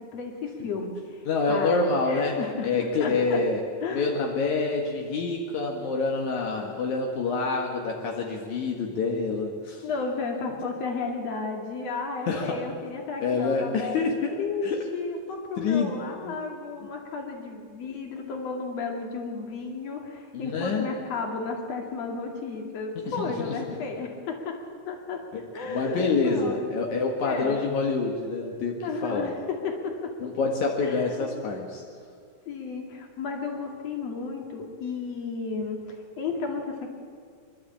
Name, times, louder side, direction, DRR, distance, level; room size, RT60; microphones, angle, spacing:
voice 1, 0.1-1.2 1.5-2.7 3.0-3.4 3.8-4.1 9.8-24.6 24.9-25.2 25.5-26.8 27.2-27.6 28.8-30.1 30.8-31.3 32.5-35.8 36.2-36.9, left 4 dB, 60° left, 2 dB, 3.4 m, -33 dB
voice 2, 1.3-3.6 3.9-9.8 12.3-12.6 13.2-14.4 14.6-14.8 15.6-15.9 16.2-16.4 16.8-16.9 20.3-20.9 23.2-23.5 25.3-29.3 30.2-31.8, left 4 dB, 75° left, 0 dB, 3.0 m, -27 dB
26.5 x 12.0 x 8.6 m, 2.1 s
omnidirectional pair, 3.4 m